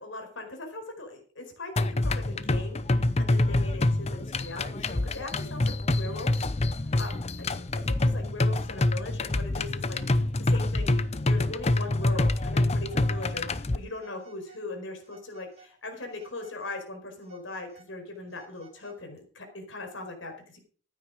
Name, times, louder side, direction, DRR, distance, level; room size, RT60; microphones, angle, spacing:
voice 1, 0.0-6.5 7.0-7.1 7.4-20.6, left 2 dB, 80° left, 4 dB, 4.7 m, -40 dB
sound 1, 1.8-13.8, left 2 dB, 35° left, 0.7 m, -26 dB
Telephone, 13.9-14.7 15.0-15.7 16.1-16.8 17.2-19.2, right 4 dB, 35° right, 4.3 m, -57 dB
14.5 x 9.4 x 5.1 m, 0.42 s
head